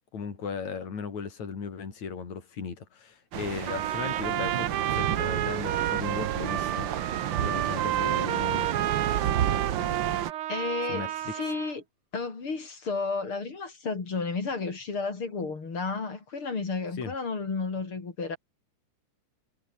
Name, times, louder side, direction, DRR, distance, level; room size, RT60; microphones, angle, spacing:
voice 1, 0.1-6.9 7.4-8.7 10.9-11.3 17.0-17.1, left 6 dB, 60° left, 5.4 m, -36 dB
sound 1, 3.3-10.3, right 10 dB, 65° right, 1.2 m, -31 dB
Trumpet, 3.7-11.7, right 13 dB, 90° right, 1.2 m, -31 dB
voice 2, 10.5-11.8 12.1-18.4, left 4 dB, 40° left, 4.4 m, -32 dB
omnidirectional pair, 3.6 m